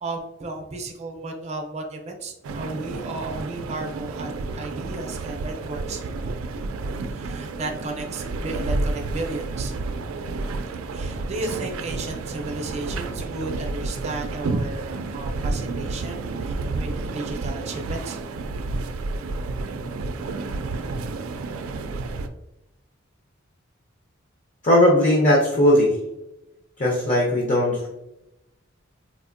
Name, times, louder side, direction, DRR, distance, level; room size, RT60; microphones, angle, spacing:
voice 1, 0.0-6.0 7.1-10.3 10.9-18.2, right 2 dB, 35° right, 3 dB, 0.5 m, -34 dB
sound 1, 2.4-22.3, right 3 dB, 85° right, 0.3 m, -30 dB
voice 2, 24.6-26.0 26.8-27.9, left 1 dB, 35° left, -2 dB, 0.6 m, -18 dB
4.2 x 2.5 x 2.5 m, 0.91 s
head